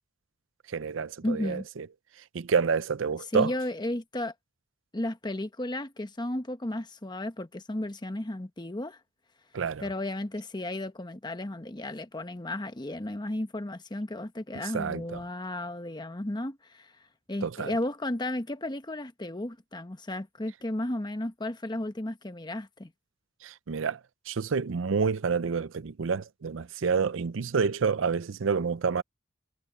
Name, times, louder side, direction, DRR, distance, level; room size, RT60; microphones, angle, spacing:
voice 1, 0.7-1.9 2.3-3.5 9.5-9.8 14.7-15.2 17.4-17.7 23.4-24.0 24.3-29.0, right 5 dB, 80° right, 0.5 m, -28 dB
voice 2, 1.2-1.7 3.3-4.3 4.9-9.0 9.8-16.9 17.3-22.9, left 1 dB, 20° left, 1.1 m, -34 dB
head